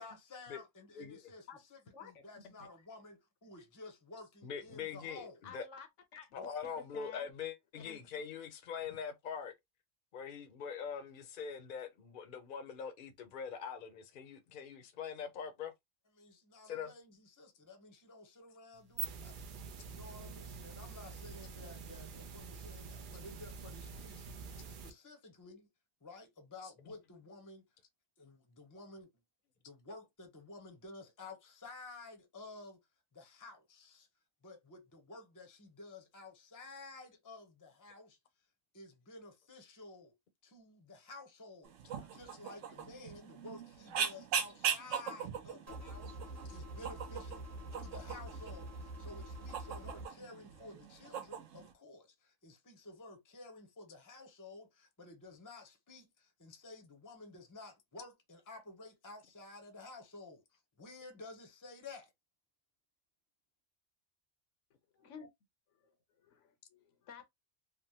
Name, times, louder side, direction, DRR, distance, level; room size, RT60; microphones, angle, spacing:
voice 1, 0.0-5.4 6.4-6.5 16.1-19.4 19.9-25.7 26.0-27.6 28.2-29.1 29.6-32.8 33.1-34.1 34.4-38.2 38.7-40.1 40.4-62.1, left 3 dB, 20° left, 0.7 m, -53 dB
voice 2, 1.9-2.7 5.4-7.3 7.7-8.0 65.0-65.3 65.7-67.3, left 5 dB, 75° left, 1.0 m, -53 dB
voice 3, 4.4-5.7 6.3-9.5 10.1-15.7 16.6-16.9 26.6-26.7, left 7 dB, 50° left, 0.7 m, -43 dB
sound 1, 18.7-24.9, right 6 dB, 55° right, 0.6 m, -46 dB
sound 2, 41.6-51.7, right 7 dB, 85° right, 1.0 m, -41 dB
sound 3, 45.7-50.1, right 1 dB, 15° right, 0.9 m, -46 dB
3.4 x 2.1 x 2.8 m
omnidirectional pair, 1.3 m